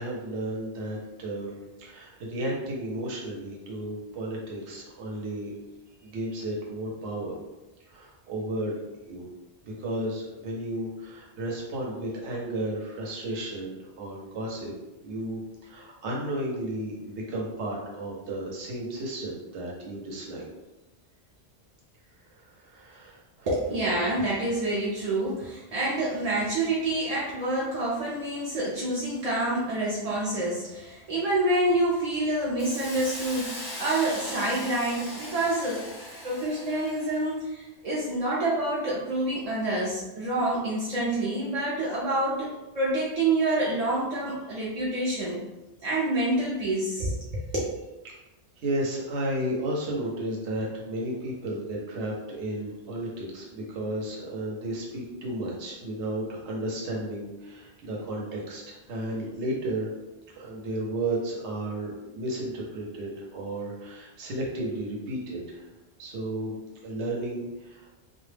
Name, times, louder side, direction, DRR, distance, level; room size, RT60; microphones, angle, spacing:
voice 1, 0.0-5.5 6.0-7.4 7.8-8.8 9.1-9.3 9.6-14.7 15.0-20.5 22.6-23.5 48.0-48.1 48.6-59.9 60.3-65.6 66.0-66.6 66.8-67.9, right 1 dB, 90° right, -2 dB, 0.9 m, -33 dB
voice 2, 23.5-35.9 36.2-45.4 45.8-47.7, right 1 dB, 55° right, -6 dB, 0.4 m, -27 dB
Hiss, 32.6-37.3, left 1 dB, 30° left, 0.5 m, -39 dB
2.2 x 2.1 x 3.2 m, 1.0 s
omnidirectional pair, 1.1 m